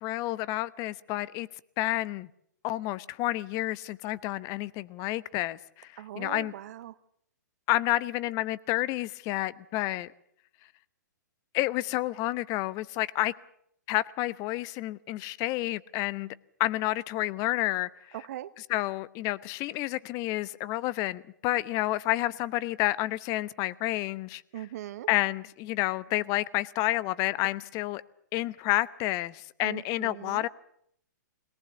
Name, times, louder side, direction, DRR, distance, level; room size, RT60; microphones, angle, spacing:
voice 1, 0.0-1.5 1.8-2.3 2.6-6.5 7.7-10.1 11.5-13.3 13.9-16.3 16.6-17.9 18.6-24.4 25.1-28.0 28.3-30.5, left 17 dB, 35° left, 0.8 m, -30 dB
voice 2, 6.0-6.9 18.1-18.5 24.5-25.1 29.6-30.5, right 13 dB, 55° right, 1.1 m, -40 dB
22.0 x 18.5 x 8.0 m
hypercardioid pair, 120°, 10 cm